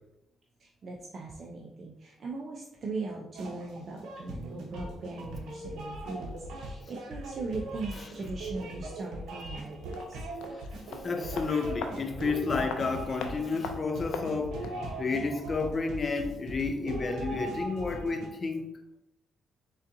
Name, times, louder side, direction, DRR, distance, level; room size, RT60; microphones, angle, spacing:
voice 1, 0.6-10.0, right 3 dB, 50° right, 0.5 m, -39 dB
sound 1, 3.3-18.3, right 2 dB, 80° right, 0.9 m, -40 dB
sound 2, 9.9-14.9 15.1-15.2, left 5 dB, 90° left, 0.4 m, -42 dB
voice 2, 11.0-14.7 15.0-18.6, left 4 dB, 40° left, 0.5 m, -31 dB
4.0 x 3.6 x 2.6 m
cardioid pair, 90°, 0 cm